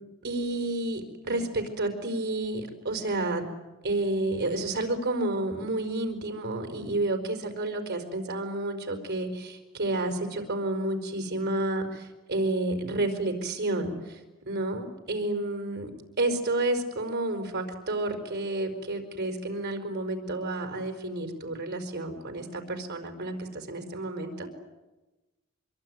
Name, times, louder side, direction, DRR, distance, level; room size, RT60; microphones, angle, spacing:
voice 1, 0.2-3.4 3.8-15.9 16.2-24.5, right 2 dB, 50° right, 6 dB, 4.7 m, -30 dB
26.0 x 22.5 x 9.5 m, 1.1 s
head